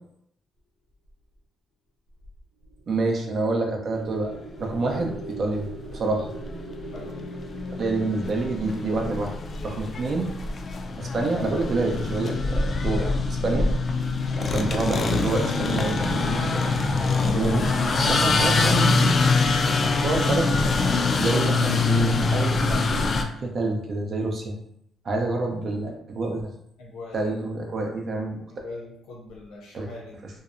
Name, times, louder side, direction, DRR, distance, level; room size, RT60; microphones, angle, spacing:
sound 1, 2.6-11.1, right 4 dB, 80° right, 0.7 m, -42 dB
voice 1, 2.9-4.3 4.6-6.3 7.8-9.3 9.6-10.3 11.0-13.1 13.4-13.7 14.4-16.6 17.2-17.7 18.1-19.2 19.8-20.7 21.1-22.8 23.4-24.5 25.0-26.4 27.1-28.4 29.7-29.9, right 2 dB, 50° right, 1 dB, 0.5 m, -27 dB
sound 2, 4.5-4.6 5.0-23.2, left 3 dB, 45° left, 0.3 m, -24 dB
voice 2, 6.9-7.3 26.8-27.4 28.5-30.3, left 2 dB, 85° left, -3 dB, 0.6 m, -41 dB
sound 3, 13.1-21.6, left 1 dB, ahead, 0.6 m, -42 dB
2.7 x 2.0 x 2.5 m, 0.75 s
cardioid pair, 90°, 0 cm